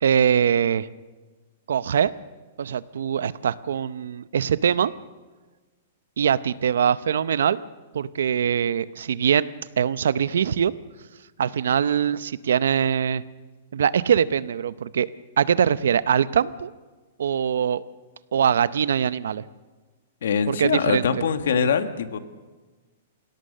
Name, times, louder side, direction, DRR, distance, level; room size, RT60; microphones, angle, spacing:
voice 1, 0.0-0.9 1.7-2.1 2.6-4.9 6.2-7.6 7.9-9.5 9.8-10.7 11.4-13.2 13.7-15.1 15.4-16.7 17.2-17.8 18.3-19.5 20.5-21.0, right 8 dB, 85° right, 16 dB, 0.7 m, -22 dB
voice 2, 20.2-22.2, left 6 dB, 70° left, 10 dB, 1.4 m, -23 dB
25.0 x 17.0 x 6.4 m, 1.3 s
hypercardioid pair, 180°, 0 cm